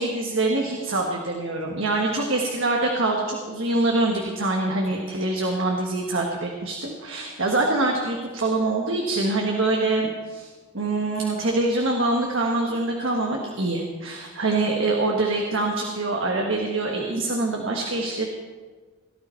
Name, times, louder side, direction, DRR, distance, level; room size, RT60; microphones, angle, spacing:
voice 1, 0.0-18.3, right 2 dB, 70° right, 0 dB, 1.5 m, -25 dB
18.0 x 12.0 x 4.5 m, 1.5 s
head